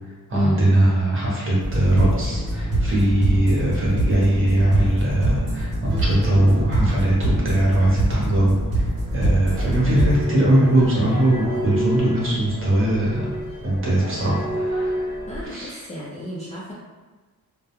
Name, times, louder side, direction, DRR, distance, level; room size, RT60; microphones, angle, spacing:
voice 1, 0.3-8.5 9.1-13.2 13.6-14.9 15.5-15.8, right 1 dB, 35° right, -5 dB, 0.8 m, -20 dB
sound 1, 1.6-10.2, right 1 dB, 75° right, 0.9 m, -24 dB
sound 2, 9.5-15.5, right 1 dB, 45° left, 0.7 m, -30 dB
voice 2, 15.3-16.7, equal, 20° left, -7 dB, 0.3 m, -30 dB
2.2 x 2.1 x 2.9 m, 1.3 s
wide cardioid pair, 130°, 36 cm